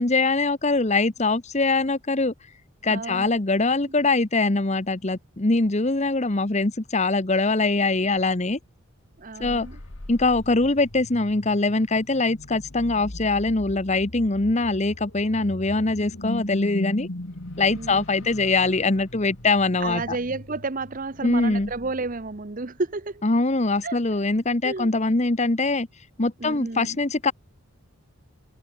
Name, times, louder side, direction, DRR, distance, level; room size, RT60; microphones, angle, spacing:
voice 1, 0.0-2.3 2.8-8.6 9.4-9.7 10.1-17.1 17.6-20.2 21.2-21.7 23.2-25.9 26.2-27.3, left 3 dB, 30° left, 1.0 m, -23 dB
voice 2, 2.9-3.3 3.9-4.0 9.2-9.8 17.7-18.3 19.8-23.2 23.8-24.0 24.6-24.9 26.4-27.0, right 3 dB, 35° right, 0.8 m, -32 dB
sound 1, 9.2-22.7, left 1 dB, 60° left, 1.9 m, -40 dB
head